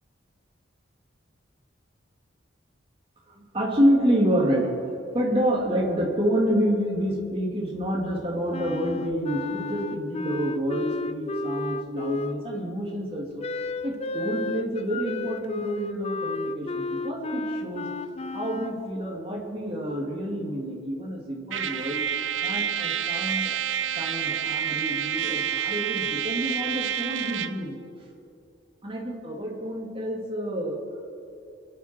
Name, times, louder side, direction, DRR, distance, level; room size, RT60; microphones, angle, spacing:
voice 1, 3.3-4.7 5.1-13.4 13.8-17.9 18.3-22.0 22.4-23.5 23.9-27.8 28.8-30.8, equal, 30° right, -3 dB, 2.6 m, -28 dB
Wind instrument woodwind instrument, 8.5-12.7 13.4-18.8, left 2 dB, 35° left, 0.5 m, -33 dB
Trumpet, 21.5-27.6, right 8 dB, 75° right, 0.6 m, -28 dB
27.0 x 9.8 x 4.5 m, 2.6 s
head